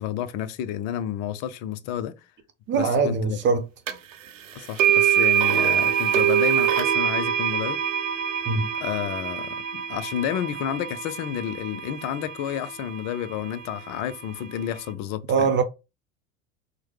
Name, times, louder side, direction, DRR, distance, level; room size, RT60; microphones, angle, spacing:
voice 1, 0.0-2.1 2.7-3.4 4.5-7.8 8.8-15.5, left 10 dB, 45° left, 0.6 m, -30 dB
voice 2, 2.7-3.7 8.5-8.7 15.3-15.6, right 5 dB, 30° right, 0.6 m, -22 dB
sound 1, 3.9-4.0 4.8-12.8, right 10 dB, 75° right, 0.7 m, -24 dB
4.7 x 2.2 x 3.0 m
figure-of-eight pair, 80°, 39 cm